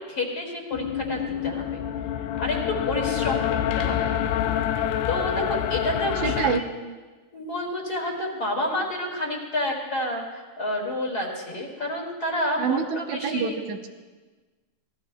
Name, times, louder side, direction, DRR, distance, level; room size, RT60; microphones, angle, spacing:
voice 1, 0.1-1.8 2.1-4.2 4.8-6.5 7.3-13.6, left 1 dB, 30° left, -1 dB, 2.2 m, -30 dB
sound 1, 0.7-6.6, left 10 dB, 80° left, 1.8 m, -27 dB
voice 2, 6.2-6.6 12.6-13.9, right 6 dB, 70° right, 5 dB, 2.0 m, -27 dB
26.5 x 19.5 x 2.3 m, 1.3 s
omnidirectional pair, 4.2 m